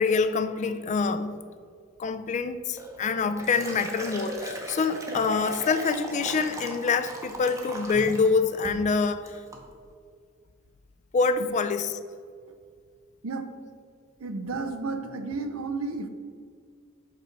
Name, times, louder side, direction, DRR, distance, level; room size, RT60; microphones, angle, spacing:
voice 1, 0.0-1.4 2.0-9.4 11.1-12.0, left 4 dB, 35° left, 11 dB, 0.3 m, -26 dB
Liquid, 2.8-8.3 8.6-8.9 9.3-9.6, right 1 dB, 15° right, 0.7 m, -37 dB
voice 2, 14.2-16.1, right 3 dB, 85° right, 8 dB, 0.6 m, -32 dB
5.2 x 3.9 x 5.8 m, 2.1 s
head